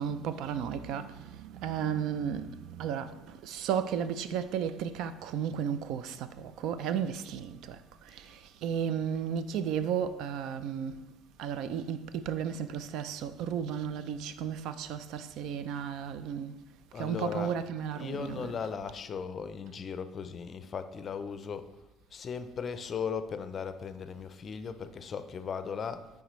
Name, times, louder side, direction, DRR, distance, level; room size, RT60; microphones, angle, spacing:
voice 1, 0.0-11.0 11.4-16.6 17.0-18.5, right 8 dB, 75° right, 0.3 m, -34 dB
voice 2, 16.9-17.6 17.9-21.7 22.1-26.1, left 6 dB, 40° left, 0.4 m, -37 dB
9.1 x 3.6 x 3.1 m
cardioid pair, 95°, 0 cm